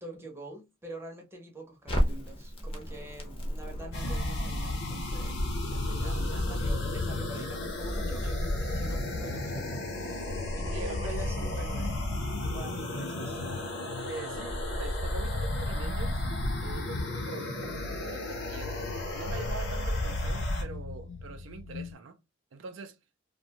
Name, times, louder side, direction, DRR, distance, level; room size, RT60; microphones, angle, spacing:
voice 1, 0.0-5.4 5.7-12.0 12.5-13.4, right 1 dB, 15° right, 0.6 m, -45 dB
Crackle, 1.9-8.0, equal, 30° left, 0.6 m, -35 dB
sound 1, 3.6-21.9, left 4 dB, 85° left, 0.3 m, -40 dB
sound 2, 3.9-20.6, left 1 dB, 60° left, 0.8 m, -33 dB
voice 2, 6.0-6.5 10.6-12.0 14.0-16.3 16.6-22.2 22.5-23.0, right 4 dB, 75° right, 0.4 m, -44 dB
2.5 x 2.2 x 2.7 m
head